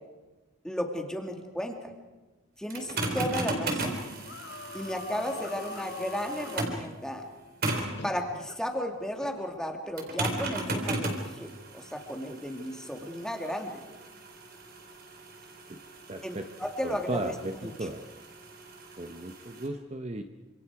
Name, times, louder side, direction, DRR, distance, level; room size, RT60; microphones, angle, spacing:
voice 1, 0.6-1.9 2.6-4.0 4.7-7.2 8.0-13.8 16.2-17.7, equal, 5° left, 3 dB, 2.4 m, -34 dB
sound 1, 2.7-6.9 7.6-8.0 10.0-19.7, right 2 dB, 50° right, 4.1 m, -36 dB
sound 2, 4.2-6.8 8.0-8.6 9.2-9.4, left 5 dB, 55° left, 0.8 m, -43 dB
voice 2, 16.1-16.5 16.8-18.0 19.0-20.2, right 2 dB, 30° right, 6 dB, 0.9 m, -35 dB
28.5 x 26.5 x 4.8 m, 1.2 s
head